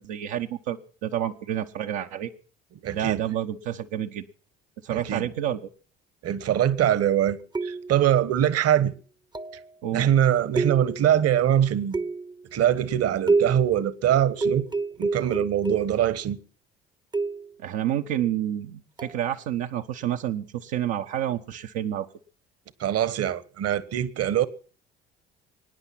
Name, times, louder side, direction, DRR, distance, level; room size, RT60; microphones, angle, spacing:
voice 1, 0.0-2.3 2.9-4.3 4.8-5.6 9.8-10.1 17.6-22.1, right 11 dB, 70° right, 1.1 m, -29 dB
voice 2, 2.8-3.2 4.9-5.2 6.2-8.9 9.9-12.0 12.5-14.6 15.0-16.4 22.8-24.5, right 10 dB, 50° right, 1.3 m, -23 dB
sound 1, 7.5-8.1 9.3-9.7 10.6-11.2 11.9-12.4 13.3-13.8 14.4-16.1 17.1-17.6 19.0-19.2, right 3 dB, 15° right, 0.8 m, -28 dB
23.5 x 9.8 x 5.9 m
hypercardioid pair, 60°, 31 cm